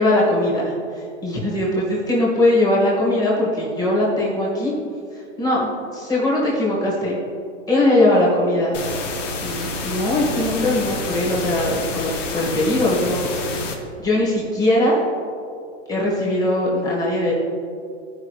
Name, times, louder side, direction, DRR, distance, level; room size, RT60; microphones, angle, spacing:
voice 1, 0.0-4.7 5.4-7.2 7.7-8.8 9.4-13.3 14.0-15.0 15.9-17.3, left 1 dB, 10° left, -6 dB, 2.0 m, -20 dB
sound 1, 8.7-13.7, left 3 dB, 75° left, 1.4 m, -28 dB
15.5 x 5.2 x 3.3 m, 2.3 s
hypercardioid pair, 155°, 37 cm